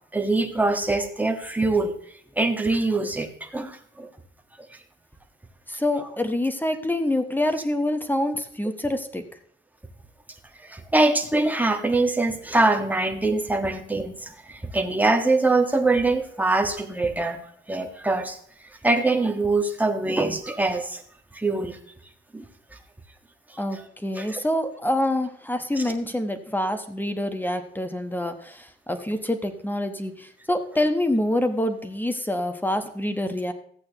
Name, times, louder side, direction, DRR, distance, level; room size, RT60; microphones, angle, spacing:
voice 1, 0.1-1.9 2.4-4.1 10.6-17.4 17.7-18.4 18.8-21.0 21.3-21.8 22.3-22.4 24.1-24.4 25.8-25.9, right 2 dB, 10° right, 4 dB, 1.5 m, -23 dB
voice 2, 5.7-9.2 23.6-33.5, left 1 dB, 10° left, 8 dB, 1.1 m, -26 dB
14.5 x 8.6 x 3.0 m, 0.62 s
cardioid pair, 90°, 20 cm